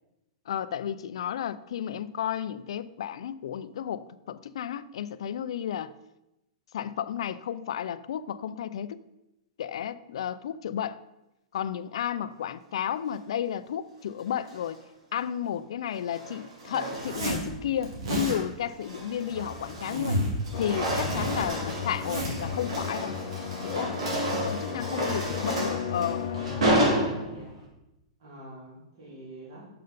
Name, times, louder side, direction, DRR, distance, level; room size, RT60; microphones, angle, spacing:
voice 1, 0.5-5.9 6.7-9.0 9.6-11.0 11.5-14.8 15.1-20.2 20.6-23.2 23.6-24.0 24.3-26.3, left 9 dB, 60° left, 0.4 m, -32 dB
sound 1, 14.3-14.8 15.9-17.4 17.9-18.2 18.6-20.1 20.3-27.7, right 1 dB, 80° right, 2.7 m, -31 dB
Zipper (clothing), 17.0-17.5 17.8-18.4 19.3-20.4 20.7-22.4, equal, 55° right, 2.3 m, -32 dB
sound 2, 20.5-26.9, left 7 dB, 40° left, 0.8 m, -35 dB
voice 2, 28.2-29.7, right 1 dB, 40° right, 3.1 m, -45 dB
6.7 x 5.7 x 5.1 m
supercardioid pair, 180°, 3 cm